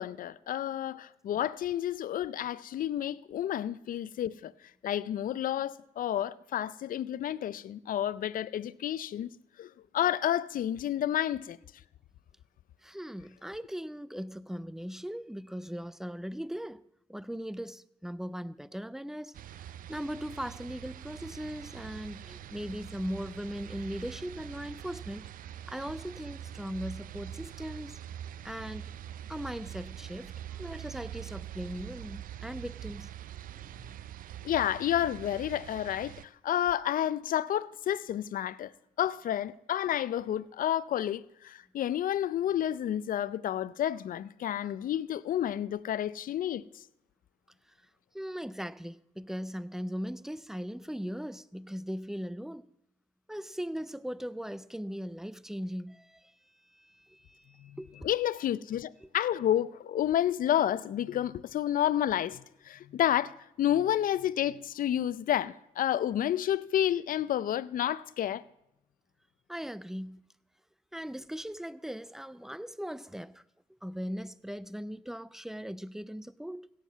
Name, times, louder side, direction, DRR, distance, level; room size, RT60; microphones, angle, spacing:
voice 1, 0.0-4.5 4.8-9.3 9.6-11.6 34.4-38.7 39.0-46.8 57.6-57.8 58.0-68.4, left 11 dB, 70° left, 0.5 m, -30 dB
voice 2, 12.8-16.8 17.1-25.3 25.7-28.0 28.4-28.9 29.3-33.1 33.7-34.0 48.1-52.7 53.3-56.4 56.6-58.1 59.0-59.1 69.5-70.3 70.9-73.4 73.7-76.7, equal, 5° right, 0.5 m, -39 dB
sound 1, 19.3-36.3, right 11 dB, 75° right, 0.4 m, -44 dB
16.5 x 7.5 x 7.3 m
cardioid pair, 75°, 15 cm